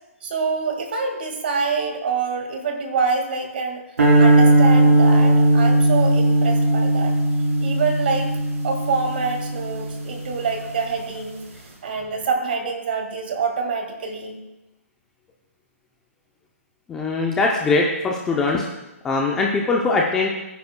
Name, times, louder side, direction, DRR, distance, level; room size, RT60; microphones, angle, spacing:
voice 1, 0.2-3.8 4.2-7.1 7.6-8.3 8.6-11.4 11.8-14.4, right 5 dB, 40° right, 4 dB, 1.8 m, -26 dB
sound 1, 4.0-10.3, right 2 dB, 75° right, 4.0 m, -17 dB
voice 2, 16.9-18.7 19.0-20.3, left 3 dB, 5° left, -1 dB, 0.5 m, -21 dB
21.0 x 9.6 x 2.2 m, 0.99 s
hypercardioid pair, 175°, 8 cm